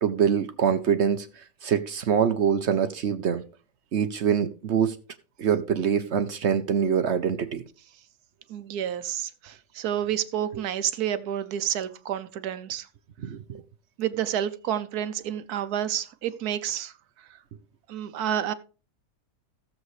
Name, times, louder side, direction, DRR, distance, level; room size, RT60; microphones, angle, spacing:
voice 1, 0.0-3.4 3.9-5.0 5.4-7.6 13.2-13.6, right 7 dB, 55° right, 0.8 m, -24 dB
voice 2, 8.5-12.9 14.0-17.3 17.9-18.5, right 10 dB, 75° right, 1.3 m, -30 dB
15.0 x 7.3 x 3.2 m
omnidirectional pair, 1.7 m